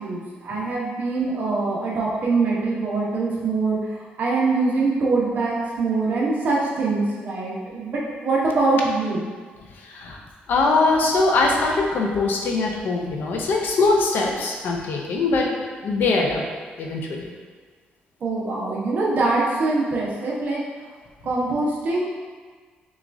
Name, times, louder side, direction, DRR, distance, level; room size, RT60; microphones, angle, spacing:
voice 1, 0.0-9.3 18.2-20.6 21.2-22.0, right 3 dB, 55° right, -5 dB, 1.0 m, -23 dB
voice 2, 9.8-10.2 10.5-15.5 15.8-16.4 16.8-17.3, left 3 dB, 65° left, 0 dB, 0.6 m, -22 dB
6.1 x 2.4 x 2.6 m, 1.5 s
cardioid pair, 135°, 4 cm